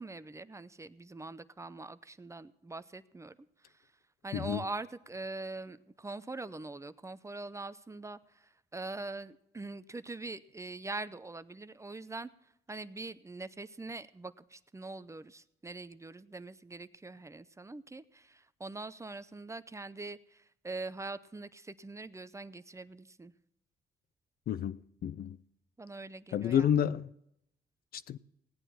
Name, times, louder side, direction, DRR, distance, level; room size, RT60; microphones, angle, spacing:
voice 1, 0.0-3.4 3.6-3.9 4.2-12.3 12.7-23.3 25.8-26.8, right 3 dB, 15° right, 0.6 m, -43 dB
voice 2, 4.3-4.6 24.5-25.4 26.3-27.1 27.9-28.2, left 9 dB, 60° left, 0.5 m, -30 dB
17.5 x 9.0 x 5.7 m
cardioid pair, 85°, 18 cm